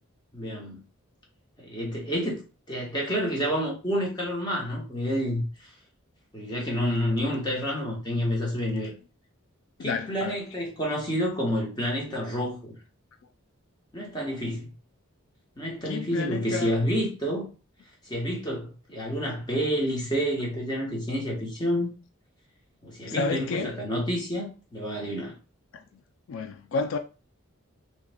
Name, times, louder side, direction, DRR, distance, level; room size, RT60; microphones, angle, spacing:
voice 1, 0.3-0.8 1.6-2.4 2.7-5.4 6.3-8.9 9.8-12.7 13.9-14.7 15.6-17.5 18.1-21.9 22.8-25.3, equal, 20° left, 1.2 m, -29 dB
voice 2, 9.8-10.4 15.8-16.8 23.1-23.8 25.7-25.8 26.3-27.0, left 4 dB, 70° left, 0.3 m, -31 dB
3.5 x 3.1 x 3.5 m
head